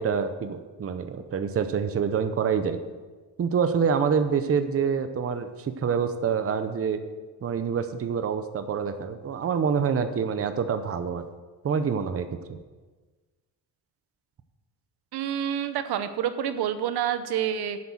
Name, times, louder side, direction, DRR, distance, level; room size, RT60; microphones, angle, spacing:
voice 1, 0.0-2.8 3.4-7.0 7.4-11.2 11.6-12.6, right 6 dB, 35° right, 10 dB, 0.8 m, -26 dB
voice 2, 15.1-17.8, right 9 dB, 70° right, 11 dB, 1.0 m, -28 dB
10.5 x 8.7 x 7.3 m, 1.3 s
cardioid pair, 140°, 40 cm